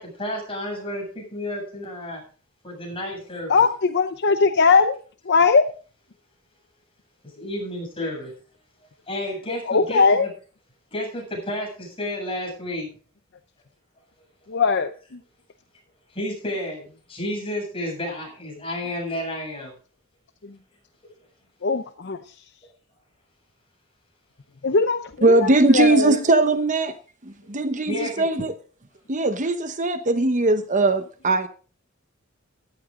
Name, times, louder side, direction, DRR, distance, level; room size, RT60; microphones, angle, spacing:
voice 1, 0.0-2.2 2.6-3.6 7.2-8.3 9.1-10.3 10.9-12.9 16.1-19.7 27.9-28.3, left 1 dB, 25° left, 7.9 m, -31 dB
voice 2, 3.5-5.0 5.3-5.6 8.0-8.1 9.7-10.3 14.5-14.9 21.6-22.2 24.6-26.2, left 4 dB, 55° left, 0.8 m, -19 dB
voice 3, 25.2-27.0 27.2-28.5 29.1-31.5, right 2 dB, 40° right, 0.9 m, -20 dB
15.0 x 12.0 x 3.7 m
head